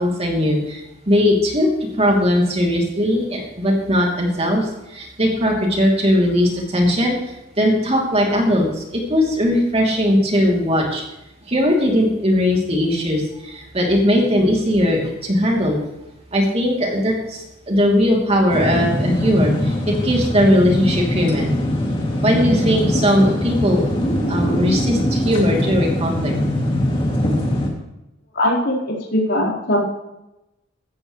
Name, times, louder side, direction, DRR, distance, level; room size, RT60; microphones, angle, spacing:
voice 1, 0.0-1.7 2.0-7.2 7.6-11.0 11.5-15.8 16.3-21.5 22.2-26.3, equal, 30° right, -1 dB, 3.0 m, -19 dB
sound 1, 18.5-27.7, left 1 dB, 25° left, 2.5 m, -22 dB
voice 2, 28.3-29.8, left 1 dB, 60° left, -7 dB, 4.4 m, -20 dB
16.5 x 13.0 x 3.2 m, 0.93 s
head